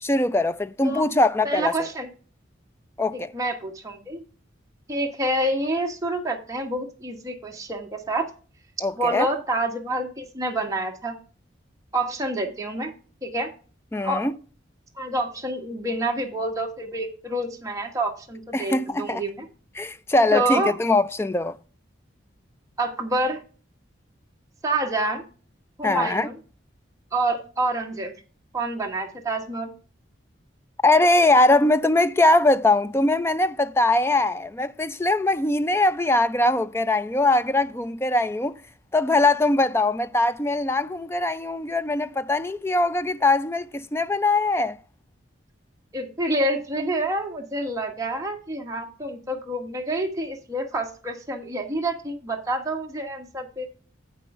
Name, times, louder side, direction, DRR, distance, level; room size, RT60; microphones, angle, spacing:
voice 1, 0.0-1.7 3.0-3.3 8.8-9.3 13.9-14.3 18.5-19.2 19.8-21.6 25.8-26.3 30.8-38.6 38.9-44.8, left 2 dB, 15° left, 0.3 m, -21 dB
voice 2, 1.4-2.1 3.1-4.2 4.9-8.3 9.0-11.2 11.9-12.9 13.2-13.5 14.0-14.2 15.0-19.5 20.3-20.7 22.8-23.4 24.6-25.2 25.8-26.3 27.1-28.1 28.5-29.7 45.9-53.7, right 1 dB, 15° right, 1.4 m, -27 dB
8.3 x 5.4 x 5.4 m
head